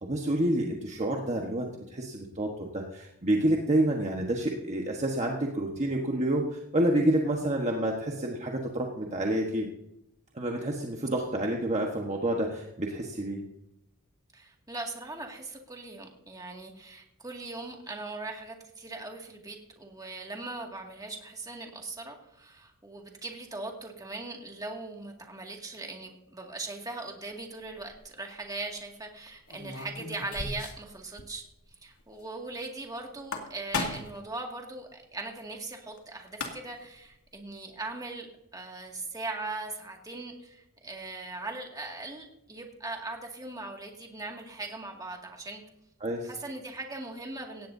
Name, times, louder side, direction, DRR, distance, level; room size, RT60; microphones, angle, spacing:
voice 1, 0.0-9.7 10.3-13.4 46.0-46.3, right 1 dB, 35° right, 0 dB, 1.3 m, -28 dB
voice 2, 14.3-31.4 31.8-38.3 38.5-45.6 46.2-47.7, right 2 dB, 15° right, 1 dB, 2.2 m, -40 dB
sound 1, 27.7-28.0 29.5-30.9 31.2-31.3 31.6-31.7 33.1-34.2 36.0-36.1 36.3-36.9, left 3 dB, 85° left, 2.3 m, -35 dB
17.5 x 16.0 x 2.7 m, 0.84 s
head